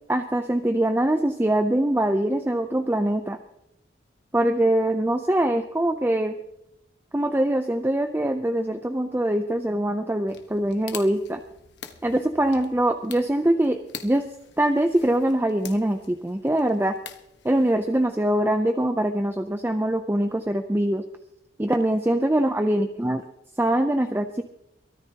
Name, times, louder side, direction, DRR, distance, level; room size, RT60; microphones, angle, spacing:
voice 1, 0.1-3.4 4.3-6.3 7.1-11.4 12.0-14.2 14.6-17.0 17.4-21.0 21.6-23.2 23.6-24.4, right 1 dB, 10° right, 7 dB, 0.5 m, -23 dB
sound 1, 10.3-18.0, left 8 dB, 65° left, 1.2 m, -45 dB
23.0 x 13.5 x 2.9 m, 0.87 s
head